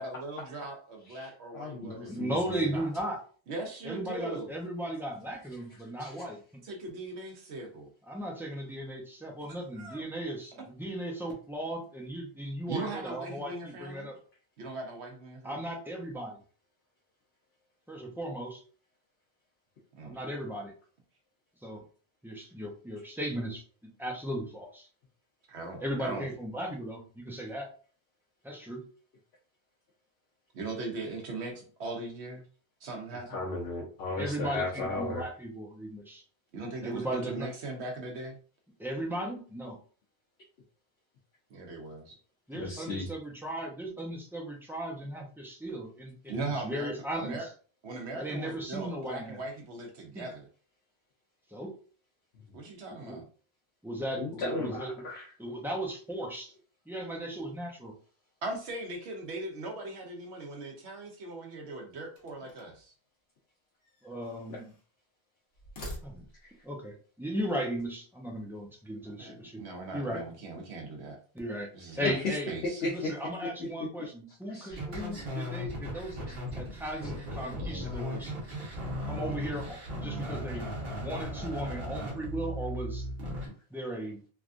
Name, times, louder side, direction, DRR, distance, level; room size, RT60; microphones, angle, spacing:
voice 1, 0.0-2.2 2.7-2.9 3.5-4.5 6.6-7.9 9.8-10.0 12.7-14.1 14.6-15.6 20.0-20.2 25.5-26.3 30.5-32.4 32.8-33.4 36.5-38.4 41.5-42.2 46.3-47.5 47.8-50.5 52.5-53.2 58.4-62.9 69.2-71.2 71.7-72.1 72.5-72.8 77.6-77.9, right 2 dB, 90° right, 2 dB, 1.1 m, -39 dB
voice 2, 1.1-2.4 6.0-6.1 33.3-35.2 42.5-43.1 54.1-55.3 64.5-64.6 66.4-66.5 72.8-73.1 74.5-74.8, left 2 dB, 80° left, -3 dB, 1.0 m, -35 dB
voice 3, 1.8-3.2 3.8-6.6 8.1-14.2 15.4-16.4 17.9-18.6 20.0-20.7 21.6-21.8 22.2-24.9 25.8-27.7 28.4-28.8 34.1-36.2 36.8-37.5 38.8-39.8 42.5-47.5 48.1-49.4 50.1-50.3 51.5-51.7 53.0-53.2 53.8-54.9 55.4-56.5 56.9-57.9 64.0-64.7 66.0-66.3 66.6-69.6 69.9-70.2 71.3-71.7 72.0-72.5 72.9-78.3 79.0-80.7 80.9-83.1 83.7-84.2, right 1 dB, 5° right, -1 dB, 0.5 m, -36 dB
sound 1, 62.2-62.9 63.8-64.9 65.5-66.6, equal, 55° left, 1.1 m, -46 dB
sound 2, 74.7-83.5, equal, 65° right, 1.3 m, -37 dB
3.2 x 2.4 x 2.5 m, 0.40 s
omnidirectional pair, 1.1 m